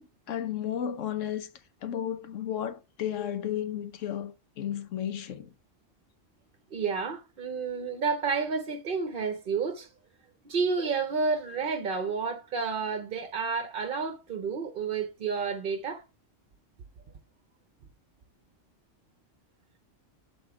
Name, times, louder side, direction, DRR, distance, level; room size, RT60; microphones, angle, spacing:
voice 1, 0.0-1.5 1.8-5.5, left 10 dB, 75° left, 1.1 m, -33 dB
voice 2, 6.7-9.9 10.4-16.0, right 5 dB, 50° right, 0.8 m, -30 dB
7.6 x 4.2 x 4.7 m
omnidirectional pair, 1.3 m